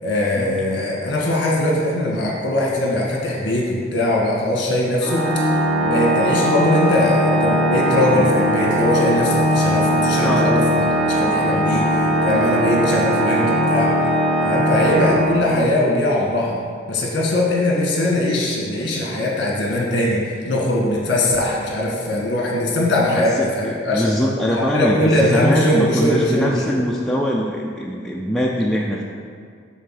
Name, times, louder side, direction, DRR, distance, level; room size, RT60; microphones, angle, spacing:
voice 1, 0.0-5.2 5.8-10.9 11.2-13.9 14.4-16.6 16.9-24.0 24.5-26.7, left 1 dB, 55° left, -3 dB, 1.6 m, -20 dB
Organ, 5.0-15.8, equal, 30° left, 1.9 m, -19 dB
voice 2, 10.2-10.5 23.2-29.0, equal, ahead, -3 dB, 0.4 m, -22 dB
6.6 x 3.8 x 6.4 m, 2.1 s
head